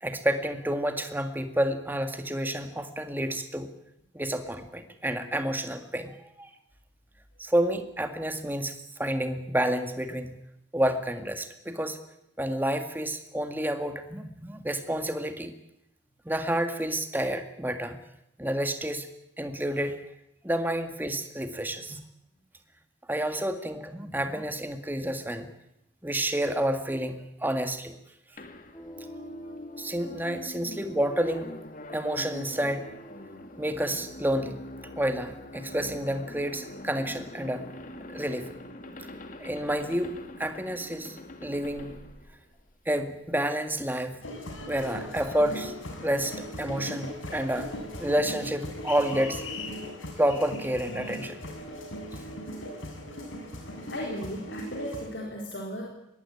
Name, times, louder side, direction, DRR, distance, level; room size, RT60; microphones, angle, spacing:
voice 1, 0.0-3.7 4.1-6.5 7.4-10.4 10.7-12.0 12.4-15.5 16.3-18.0 18.4-19.1 19.4-20.0 20.4-22.0 23.1-25.5 26.0-28.0 29.8-31.5 31.9-32.9 33.6-34.7 35.0-37.7 38.1-38.5 39.4-41.9 42.9-44.3 44.6-45.7 46.0-49.4 50.2-51.4, right 1 dB, 10° right, 7 dB, 1.9 m, -29 dB
sound 1, 28.4-43.1, left 1 dB, 40° left, 2.1 m, -44 dB
sound 2, 28.7-35.2, right 1 dB, 15° left, 2.2 m, -48 dB
sound 3, 44.2-55.1, left 1 dB, 90° left, 6.7 m, -38 dB
voice 2, 53.9-55.9, equal, 60° left, -1 dB, 4.4 m, -36 dB
22.5 x 19.0 x 9.8 m, 0.83 s
head